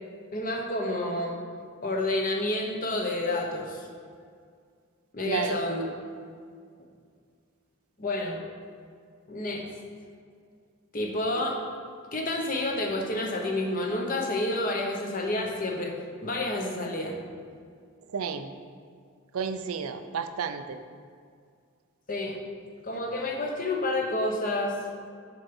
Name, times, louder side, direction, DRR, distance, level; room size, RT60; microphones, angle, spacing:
voice 1, 0.3-1.3 1.8-3.9 5.1-5.9 8.0-8.4 9.3-9.6 10.9-11.6 12.1-15.9 16.2-17.2 22.1-22.4 22.8-24.7, left 1 dB, 40° left, 1 dB, 0.9 m, -29 dB
voice 2, 5.2-5.6 18.1-18.6 19.3-20.8, right 6 dB, 75° right, 9 dB, 0.4 m, -31 dB
7.1 x 4.5 x 5.3 m, 2.2 s
head